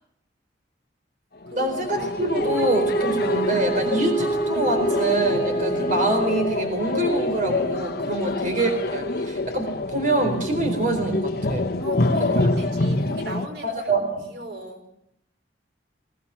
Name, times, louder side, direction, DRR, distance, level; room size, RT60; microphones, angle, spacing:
sound 1, 1.4-13.5, left 2 dB, 60° left, 1.4 m, -27 dB
voice 1, 1.5-11.7 13.6-14.3, right 2 dB, 45° right, 5 dB, 4.2 m, -25 dB
Wind instrument woodwind instrument, 2.3-6.9, right 3 dB, 15° left, 3.5 m, -27 dB
voice 2, 11.8-14.8, right 1 dB, 75° right, 4 dB, 5.0 m, -37 dB
22.5 x 18.0 x 8.7 m, 0.80 s
head